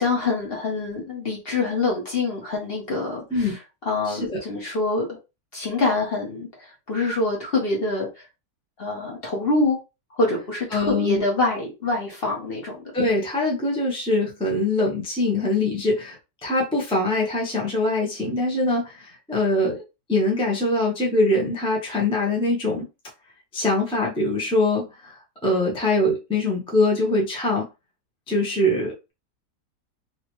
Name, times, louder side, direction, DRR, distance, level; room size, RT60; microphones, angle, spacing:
voice 1, 0.0-3.6 3.8-5.1 5.5-6.5 6.9-8.1 8.8-9.8 10.1-12.8, left 2 dB, 40° left, -2 dB, 1.2 m, -25 dB
voice 2, 4.1-4.4 10.7-11.2 12.9-16.2 16.4-19.8 20.1-22.9 23.5-27.6 28.3-29.1, left 2 dB, 5° left, -2 dB, 0.6 m, -23 dB
3.0 x 2.8 x 3.0 m, 0.27 s
omnidirectional pair, 1.8 m